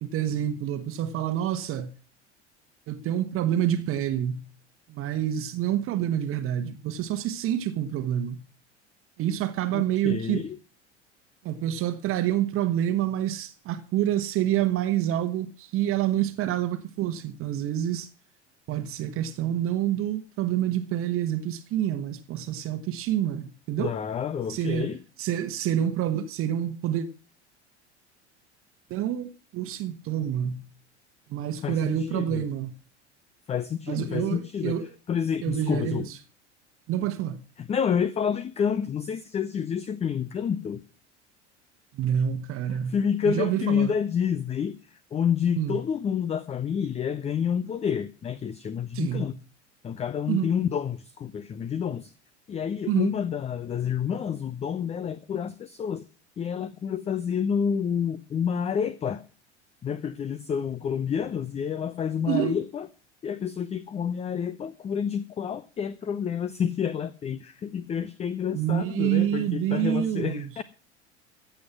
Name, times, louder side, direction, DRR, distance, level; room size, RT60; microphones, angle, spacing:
voice 1, 0.0-1.9 2.9-4.5 4.9-8.4 9.2-10.4 11.4-18.1 18.7-23.9 24.5-24.9 25.2-27.1 28.9-30.6 31.3-32.7 33.9-34.9 35.4-36.0 36.9-37.4 41.9-43.0 43.2-43.9 45.6-45.8 48.9-49.3 50.3-50.5 52.9-53.1 62.2-62.6 68.5-70.5, right 11 dB, 40° right, 1.2 m, -27 dB
voice 2, 9.7-10.6 23.8-25.0 31.6-32.4 33.5-34.8 35.1-36.1 37.6-40.8 42.9-49.3 49.8-52.1 52.5-56.0 56.4-59.2 59.8-62.9 63.2-70.6, left 7 dB, 20° left, 0.6 m, -29 dB
15.0 x 7.8 x 5.9 m
figure-of-eight pair, 75°, 35 cm